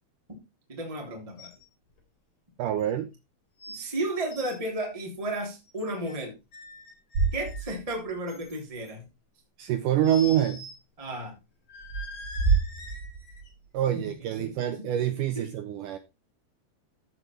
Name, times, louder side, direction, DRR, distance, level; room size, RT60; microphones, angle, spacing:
voice 1, 0.7-1.5 3.7-6.3 7.3-9.1 11.0-11.3 13.9-14.9 15.3-15.4, right 1 dB, 10° right, 2.7 m, -33 dB
sound 1, 1.4-1.7 2.0-2.1 2.8-2.9 3.6-3.9 4.2-4.6 5.7-6.2 6.5-7.8 8.3-8.9 10.0-10.8 11.1-11.2 11.7-13.5 14.1-14.2, left 2 dB, 45° left, 3.9 m, -44 dB
voice 2, 2.6-3.1 9.6-10.7 13.7-16.0, right 11 dB, 75° right, 1.9 m, -26 dB
sound 2, 7.1-8.1 8.5-8.6 11.7-13.8, right 4 dB, 50° right, 5.2 m, -28 dB
14.5 x 5.1 x 4.4 m
omnidirectional pair, 4.5 m